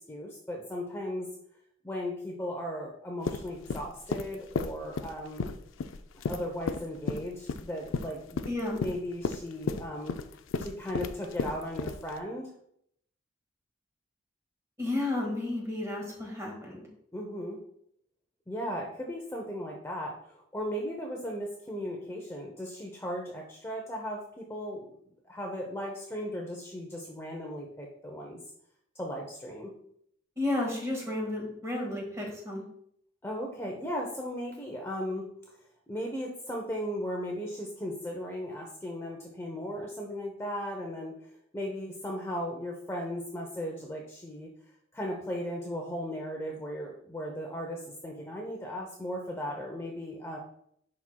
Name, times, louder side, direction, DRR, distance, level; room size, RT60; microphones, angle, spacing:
voice 1, 0.1-1.3 1.8-5.5 6.3-10.1 10.6-12.5 17.1-17.6 18.5-24.9 25.3-28.4 29.0-29.7 33.2-35.3 35.9-41.1 41.5-44.5 44.9-50.4, equal, 15° left, 0 dB, 0.7 m, -36 dB
sound 1, 3.2-12.2, left 4 dB, 85° left, 0.4 m, -34 dB
voice 2, 8.5-8.8 14.8-16.9 30.4-32.6, left 2 dB, 15° right, 0 dB, 1.7 m, -32 dB
10.5 x 4.3 x 2.2 m, 0.69 s
head